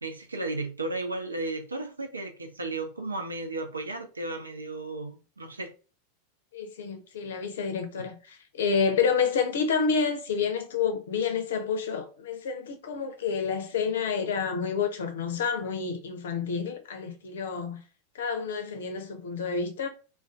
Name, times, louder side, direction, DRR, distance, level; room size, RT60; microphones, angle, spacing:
voice 1, 0.0-5.7 8.0-8.1, right 2 dB, 85° right, 0.4 m, -34 dB
voice 2, 6.5-17.8 18.1-19.9, left 6 dB, 65° left, 0.5 m, -29 dB
2.4 x 2.2 x 2.3 m
figure-of-eight pair, 90°, 0 cm